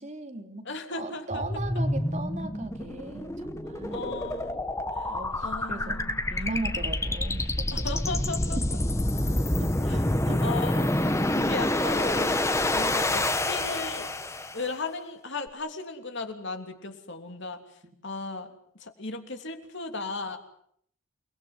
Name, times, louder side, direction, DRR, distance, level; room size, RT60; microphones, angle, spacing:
voice 1, 0.0-0.6 0.9-4.2 5.0-8.2 8.6-8.7 9.5-10.4, right 2 dB, 35° right, 5 dB, 3.3 m, -38 dB
voice 2, 0.6-1.4 3.9-4.6 4.9-5.1 5.4-6.3 7.7-8.6 9.8-10.1 10.4-10.9 11.3-12.4 12.7-14.1 14.5-17.6 18.0-20.4, left 3 dB, 55° left, 6 dB, 3.2 m, -36 dB
sound 1, 1.3-14.7, left 1 dB, 15° left, 1.4 m, -28 dB
29.0 x 21.0 x 8.1 m, 0.67 s
head